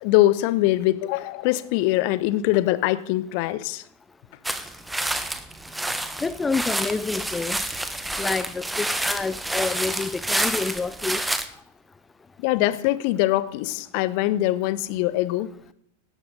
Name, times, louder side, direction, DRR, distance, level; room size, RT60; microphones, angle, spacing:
voice 1, 0.0-3.8 12.4-15.5, left 16 dB, 45° left, 15 dB, 0.9 m, -22 dB
sound 1, 4.4-11.4, right 1 dB, 5° right, 1.2 m, -28 dB
voice 2, 6.2-7.6 8.2-11.2, left 4 dB, 15° left, 15 dB, 0.4 m, -28 dB
17.5 x 12.5 x 3.9 m, 0.65 s
figure-of-eight pair, 90°, 0 cm